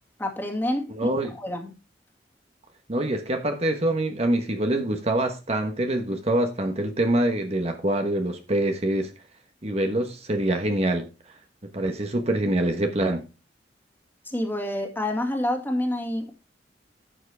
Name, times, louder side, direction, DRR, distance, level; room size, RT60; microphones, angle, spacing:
voice 1, 0.2-1.1 1.4-1.7 14.2-16.3, left 1 dB, 10° left, 2.1 m, -28 dB
voice 2, 0.9-1.3 2.9-9.1 9.6-11.1 11.7-13.3, right 1 dB, 35° right, 1.2 m, -25 dB
11.5 x 7.3 x 3.4 m
head